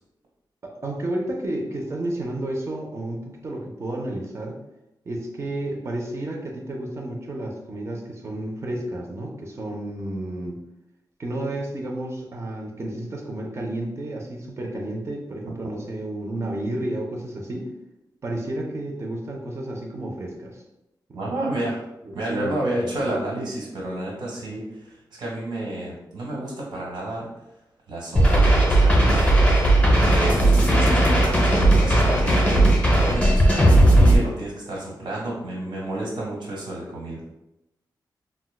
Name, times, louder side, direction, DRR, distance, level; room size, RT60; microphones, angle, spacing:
voice 1, 0.6-4.6 5.1-10.6 11.2-17.7 18.2-20.6 21.1-21.4 22.0-22.9, right 1 dB, 35° right, 0 dB, 0.4 m, -31 dB
voice 2, 21.1-21.8 22.1-27.3 27.9-29.3 29.8-37.3, right 1 dB, 80° right, -4 dB, 1.4 m, -30 dB
sound 1, 28.2-34.2, right 1 dB, 15° left, 0.5 m, -17 dB
4.2 x 2.1 x 2.2 m, 0.91 s
wide cardioid pair, 145°, 8 cm